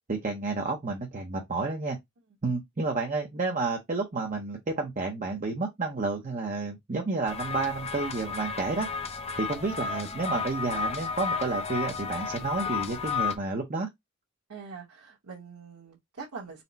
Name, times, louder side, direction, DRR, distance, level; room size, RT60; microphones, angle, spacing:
voice 1, 0.1-2.0 2.4-8.9 9.4-13.9, right 3 dB, 35° right, 0.6 m, -30 dB
sound 1, 7.3-13.4, left 5 dB, 30° left, 0.4 m, -32 dB
voice 2, 14.5-16.6, right 5 dB, 90° right, 1.2 m, -43 dB
4.2 x 2.1 x 3.9 m
head